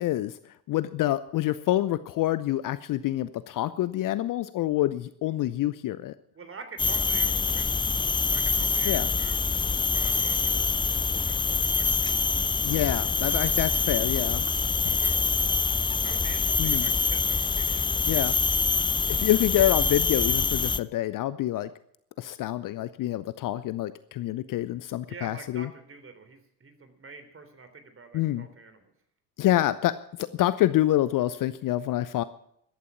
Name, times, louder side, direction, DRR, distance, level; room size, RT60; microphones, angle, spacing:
voice 1, 0.0-6.1 8.9-9.1 12.6-14.5 16.6-16.9 18.1-18.4 19.1-21.7 22.2-25.7 28.1-28.5 29.4-32.2, left 14 dB, 40° left, 16 dB, 0.8 m, -27 dB
voice 2, 6.3-7.7 8.2-9.4 9.9-12.3 14.8-15.2 16.0-18.0 25.1-28.9, right 4 dB, 25° right, 8 dB, 3.6 m, -46 dB
sound 1, 6.8-20.8, left 4 dB, 10° left, 0.5 m, -25 dB
14.5 x 12.5 x 6.0 m, 0.72 s
figure-of-eight pair, 65°, 50 cm